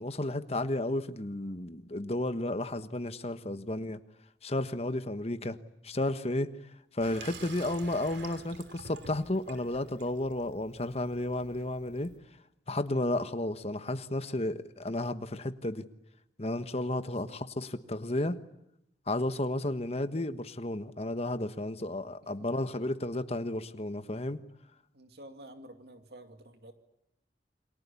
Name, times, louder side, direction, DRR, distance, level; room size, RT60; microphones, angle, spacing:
voice 1, 0.0-4.0 4.4-5.6 5.8-6.5 6.9-12.1 12.7-15.8 16.4-18.4 19.1-24.4, left 1 dB, 35° left, 1.4 m, -32 dB
Water tap faucet / Sink (filling or washing), 7.0-12.2, right 4 dB, 90° right, 3.1 m, -49 dB
voice 2, 17.0-17.4 22.4-22.6 24.9-26.7, right 1 dB, 65° right, 2.4 m, -51 dB
29.0 x 24.0 x 8.5 m
head